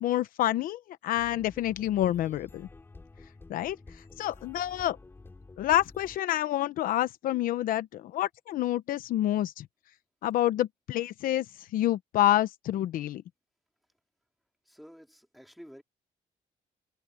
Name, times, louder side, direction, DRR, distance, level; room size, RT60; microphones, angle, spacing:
voice 1, 0.0-2.7 3.5-3.8 4.2-5.0 5.6-9.7 10.2-11.5 11.7-13.2, left 13 dB, 85° left, 0.9 m, -28 dB
sound 1, 1.1-6.2, left 3 dB, 15° left, 5.1 m, -50 dB
voice 2, 14.7-15.8, equal, ahead, 3.4 m, -50 dB
cardioid pair, 165°, 14 cm